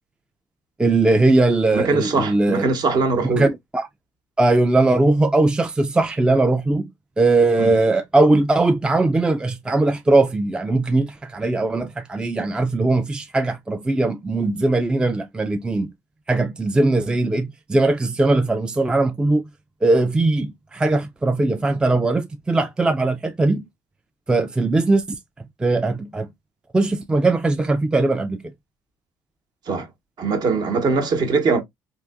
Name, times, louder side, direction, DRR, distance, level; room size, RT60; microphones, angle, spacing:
voice 1, 0.8-2.7 3.4-3.5 3.7-3.9 4.4-6.9 7.2-15.9 16.3-19.4 19.8-23.7 24.3-25.2 25.6-26.3 26.7-28.4, right 2 dB, 10° right, 0.4 m, -19 dB
voice 2, 1.7-3.5 7.6-7.7 29.7-29.9 30.2-31.6, right 4 dB, 50° right, 1.0 m, -21 dB
3.8 x 2.7 x 2.3 m
cardioid pair, 105°, 9 cm